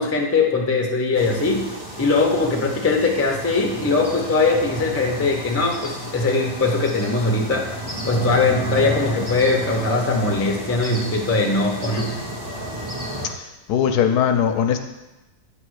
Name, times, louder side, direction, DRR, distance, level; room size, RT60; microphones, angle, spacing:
voice 1, 0.0-1.7 2.0-12.1, left 3 dB, 20° left, 1 dB, 0.3 m, -21 dB
sound 1, 1.1-13.3, equal, 15° right, 0.9 m, -31 dB
voice 2, 13.2-14.8, left 8 dB, 70° left, 6 dB, 1.0 m, -20 dB
9.4 x 3.3 x 6.3 m, 1.0 s
omnidirectional pair, 1.9 m